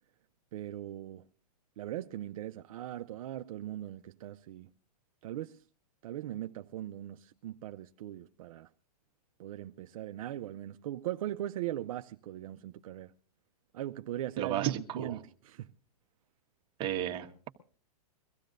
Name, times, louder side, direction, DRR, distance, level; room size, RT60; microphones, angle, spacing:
voice 1, 0.5-1.2 1.8-4.7 5.2-5.6 6.0-8.7 9.4-13.2 13.7-15.7, right 13 dB, 60° right, 0.6 m, -39 dB
voice 2, 14.4-15.2 16.8-17.5, right 11 dB, 25° right, 1.4 m, -33 dB
23.5 x 15.0 x 2.6 m
hypercardioid pair, 145°, 20 cm